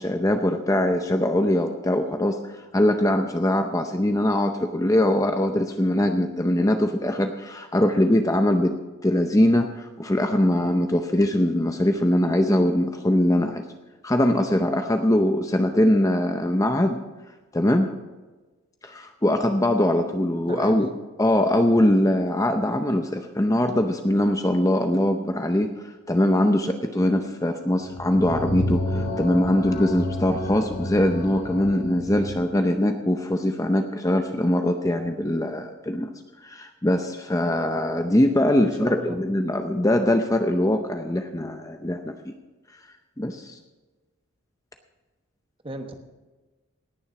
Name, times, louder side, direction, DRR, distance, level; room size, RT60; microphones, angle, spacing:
voice 1, 0.0-2.4 2.7-8.8 9.0-13.6 14.0-17.0 17.5-17.9 18.8-20.9 21.2-36.1 36.4-42.1 43.2-43.6, left 1 dB, 15° left, 6 dB, 0.6 m, -22 dB
voice 2, 20.5-20.8 38.6-39.2 45.6-46.0, right 1 dB, 25° right, 6 dB, 1.1 m, -35 dB
sound 1, 27.8-32.5, left 1 dB, 40° left, 3.8 m, -30 dB
18.5 x 7.1 x 5.9 m, 1.2 s
head